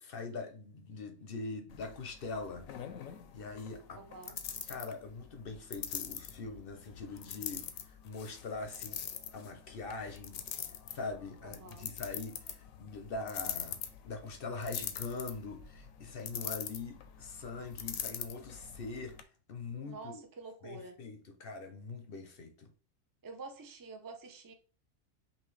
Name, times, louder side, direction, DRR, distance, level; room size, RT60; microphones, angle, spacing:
voice 1, 0.0-2.7 3.3-4.0 4.7-9.1 9.3-10.4 10.9-13.8 14.0-19.2 19.5-20.2 20.6-22.7, left 3 dB, 55° left, 0.7 m, -42 dB
sound 1, 1.7-19.2, left 9 dB, 80° left, 1.0 m, -44 dB
voice 2, 4.0-4.4 11.4-11.9 19.8-21.0 23.2-24.5, right 3 dB, 30° right, 0.3 m, -48 dB
5.6 x 2.5 x 3.2 m
omnidirectional pair, 1.4 m